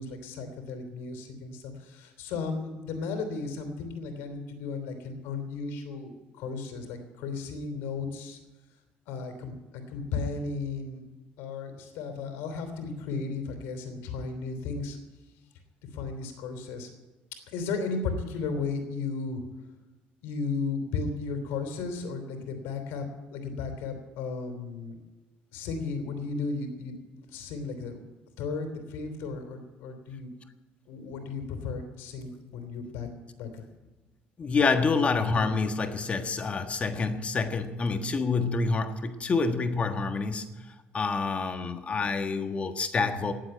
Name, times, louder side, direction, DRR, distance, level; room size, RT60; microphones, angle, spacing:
voice 1, 0.0-8.4 9.1-11.0 11.4-15.0 15.9-16.9 17.5-19.4 20.2-25.0 25.5-26.9 27.3-28.0 28.4-30.3 30.9-33.1 33.4-33.6, left 4 dB, 85° left, 3.2 m, -35 dB
voice 2, 34.4-40.7 40.9-43.3, left 4 dB, 30° left, 1.5 m, -27 dB
18.5 x 7.6 x 9.1 m
cardioid pair, 105°, 4 cm